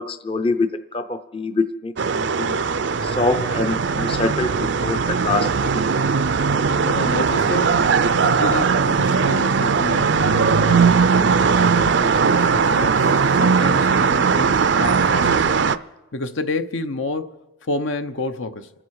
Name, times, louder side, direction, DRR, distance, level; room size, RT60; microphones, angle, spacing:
voice 1, 0.0-2.5 3.0-5.9, left 3 dB, 25° left, 0.6 m, -25 dB
sound 1, 2.0-15.8, right 5 dB, 60° right, 0.5 m, -19 dB
voice 2, 6.5-7.9 8.2-15.5 16.1-18.7, left 2 dB, 70° left, 0.8 m, -30 dB
28.5 x 10.0 x 4.8 m
head